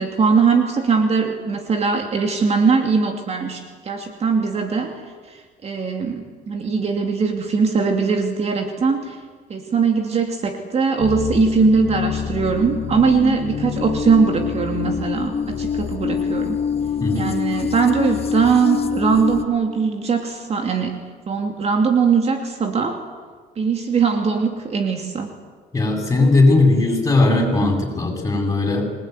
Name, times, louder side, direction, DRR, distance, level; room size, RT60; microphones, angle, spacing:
voice 1, 0.0-4.9 5.3-9.2 9.5-16.6 17.1-21.0 21.3-23.0 23.6-25.3, right 5 dB, 40° right, 5 dB, 2.7 m, -20 dB
sound 1, 11.0-19.5, left 7 dB, 35° left, 1.8 m, -25 dB
voice 2, 25.7-28.8, left 2 dB, 20° left, 2 dB, 7.5 m, -18 dB
27.0 x 20.0 x 9.6 m, 1.5 s
cardioid pair, 110°, 17 cm